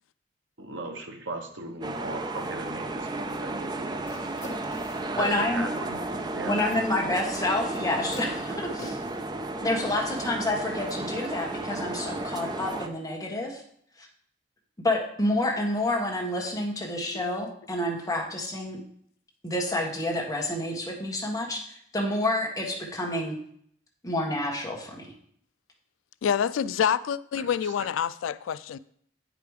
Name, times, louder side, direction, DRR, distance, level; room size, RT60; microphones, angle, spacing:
voice 1, 0.6-3.9 5.1-6.5 9.4-9.5 27.6-27.7, right 2 dB, 70° right, 1.2 m, -37 dB
sound 1, 1.8-12.9, right 2 dB, 20° right, 0.4 m, -33 dB
sound 2, 4.1-5.1 7.0-7.1 8.1-9.3, left 1 dB, 35° left, 1.7 m, -43 dB
voice 2, 5.1-5.6 6.4-9.0 9.6-13.6 14.8-18.8 19.4-23.4 24.0-25.1, left 1 dB, 15° left, 1.4 m, -29 dB
voice 3, 26.2-28.8, left 8 dB, 90° left, 0.3 m, -27 dB
8.6 x 5.1 x 4.8 m
head